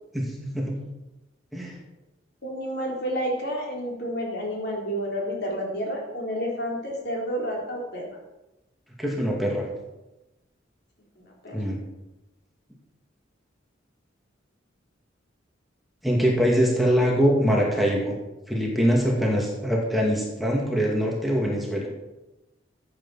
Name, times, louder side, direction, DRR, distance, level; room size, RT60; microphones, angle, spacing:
voice 1, 2.4-8.2 11.2-11.6, equal, 60° left, -1 dB, 3.8 m, -30 dB
voice 2, 9.0-9.6 11.5-11.8 16.0-18.1 18.5-21.9, equal, ahead, -2 dB, 2.2 m, -23 dB
14.0 x 8.5 x 5.7 m, 0.99 s
head